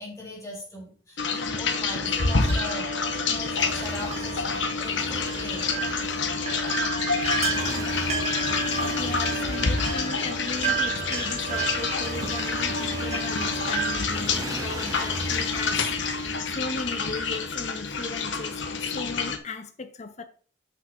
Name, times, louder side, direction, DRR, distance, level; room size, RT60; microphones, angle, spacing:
voice 1, 0.0-5.7, left 1 dB, 15° left, 2.7 m, -40 dB
sound 1, 1.2-19.4, left 4 dB, 65° left, 1.0 m, -28 dB
sound 2, 1.7-14.1, right 6 dB, 35° right, 1.9 m, -33 dB
Motorcycle, 3.1-18.3, right 3 dB, 20° right, 0.3 m, -39 dB
voice 2, 9.0-20.2, left 3 dB, 35° left, 0.7 m, -37 dB
6.0 x 5.6 x 5.1 m
head